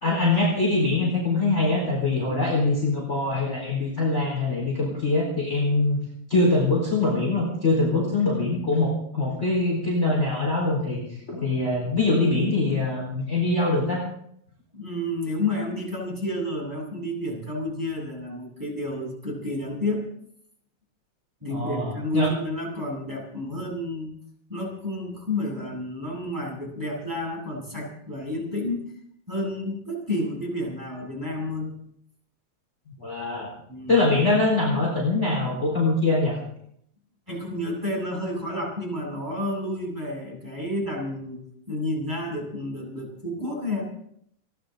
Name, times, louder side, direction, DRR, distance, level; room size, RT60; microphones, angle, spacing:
voice 1, 0.0-6.0 6.3-11.0 11.3-14.0 21.5-22.3 32.9-33.5 33.9-36.4, left 2 dB, 20° left, -4 dB, 4.7 m, -23 dB
voice 2, 2.3-2.7 7.9-8.1 14.7-20.0 21.4-24.1 24.5-28.9 29.3-31.7 33.7-34.1 37.3-41.4 41.7-43.8, left 1 dB, 5° right, -3 dB, 7.6 m, -30 dB
30.0 x 11.5 x 4.0 m, 0.69 s
omnidirectional pair, 3.3 m